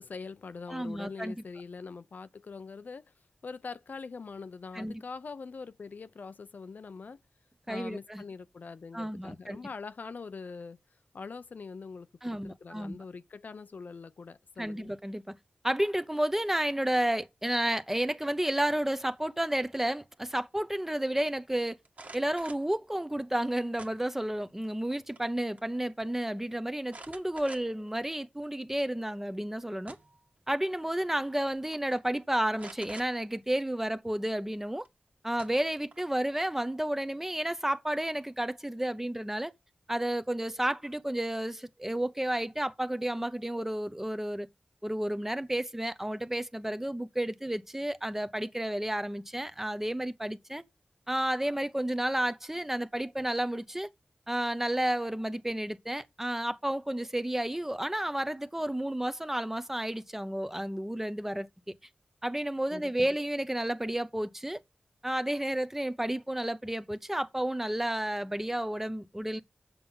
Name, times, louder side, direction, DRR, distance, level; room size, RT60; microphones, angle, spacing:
voice 1, 0.0-3.0 3.4-7.2 7.7-10.8 11.1-14.9 62.7-63.1, left 4 dB, 70° left, 0.5 m, -43 dB
voice 2, 0.7-1.4 4.7-5.0 7.7-8.2 8.9-9.6 12.2-13.0 14.6-15.2 15.6-21.8 22.1-30.0 30.5-34.9 35.2-39.5 39.9-44.5 44.8-50.6 51.1-53.9 54.3-61.5 62.2-64.6 65.0-69.4, right 1 dB, 10° right, 0.8 m, -31 dB
sound 1, 21.9-22.7 23.8-24.4 24.8-25.3 25.6-25.7 26.9-27.9 28.4-28.5 29.5-30.3 31.3-31.4 31.7-32.0 32.6-33.1 34.8-34.9 35.4-36.2, right 3 dB, 55° right, 1.7 m, -48 dB
7.6 x 6.9 x 5.5 m
wide cardioid pair, 90°, 3 cm